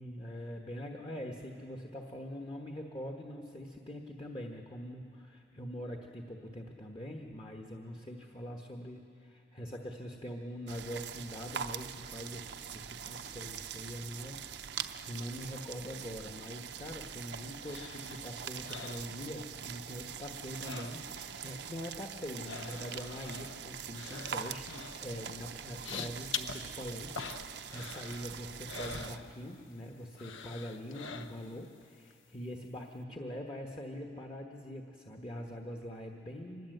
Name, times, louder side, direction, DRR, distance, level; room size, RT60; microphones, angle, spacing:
voice 1, 0.0-36.7, equal, 25° left, 2 dB, 1.2 m, -43 dB
sound 1, 10.7-29.2, right 8 dB, 60° right, 0.7 m, -43 dB
sound 2, 16.7-19.8 20.0-21.4 21.6-29.8 30.1-31.7 32.1-32.2, left 6 dB, 80° left, 0.9 m, -45 dB
25.5 x 20.5 x 7.9 m, 2.4 s
head